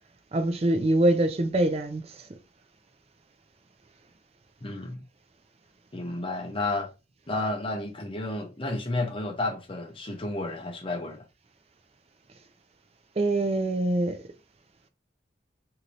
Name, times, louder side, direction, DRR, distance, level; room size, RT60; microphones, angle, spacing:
voice 1, 0.3-2.3 13.2-14.2, right 1 dB, 35° right, 0.4 m, -24 dB
voice 2, 4.6-5.0 5.9-6.9 7.3-11.2, left 2 dB, 30° left, 0.7 m, -31 dB
3.1 x 2.7 x 2.5 m
head